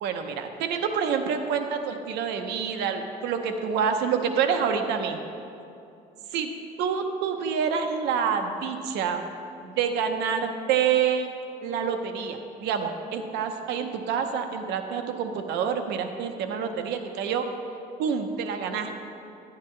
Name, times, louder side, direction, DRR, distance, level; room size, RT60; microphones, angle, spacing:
voice 1, 0.0-5.2 6.3-6.5 6.8-9.2 9.6-17.4 18.0-19.1, right 7 dB, 85° right, 6 dB, 0.7 m, -27 dB
11.0 x 9.6 x 3.2 m, 2.7 s
cardioid pair, 110°, 17 cm